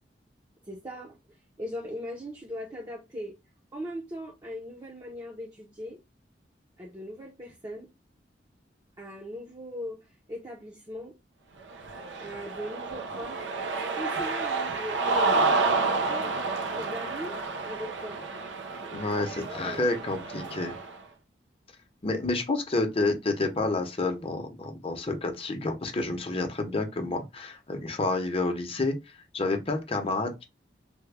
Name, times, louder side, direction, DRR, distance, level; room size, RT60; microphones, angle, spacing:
voice 1, 0.6-1.2 1.6-3.3 3.7-6.0 6.8-7.9 9.0-10.0 10.3-11.1 12.2-13.4 13.9-17.4 17.6-18.2 18.8-19.0 19.4-20.2, equal, 20° right, 0.7 m, -39 dB
Cheering, 11.7-20.9, right 3 dB, 90° right, 0.6 m, -30 dB
voice 2, 18.9-20.7 22.0-28.9 29.3-30.4, left 2 dB, 35° left, 0.8 m, -29 dB
3.4 x 2.2 x 3.3 m
head